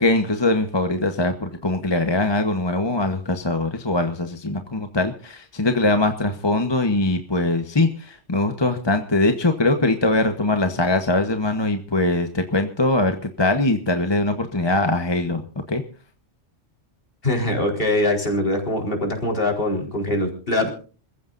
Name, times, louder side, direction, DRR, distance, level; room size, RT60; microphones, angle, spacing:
voice 1, 0.0-15.4 15.7-15.8, left 2 dB, 25° left, 6 dB, 1.1 m, -22 dB
voice 2, 17.2-20.7, left 1 dB, 50° left, 2 dB, 4.5 m, -23 dB
27.5 x 15.0 x 2.6 m, 0.39 s
omnidirectional pair, 1.2 m